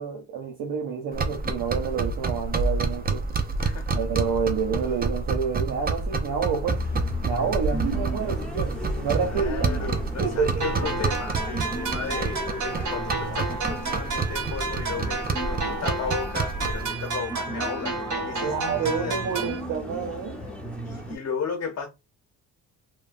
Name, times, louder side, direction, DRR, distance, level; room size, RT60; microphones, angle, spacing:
voice 1, 0.0-3.2 3.9-6.8 7.2-9.7 10.2-10.9 18.4-20.4, right 6 dB, 70° right, 0.8 m, -28 dB
sound 1, 1.1-16.9, right 4 dB, 25° right, 0.5 m, -29 dB
voice 2, 3.6-4.0 9.1-19.2 20.8-21.9, left 6 dB, 45° left, 1.0 m, -34 dB
sound 2, 6.6-21.2, equal, 5° left, 1.1 m, -36 dB
sound 3, 10.6-19.6, right 3 dB, 55° right, 1.2 m, -31 dB
3.0 x 2.1 x 2.5 m
supercardioid pair, 65°, 36 cm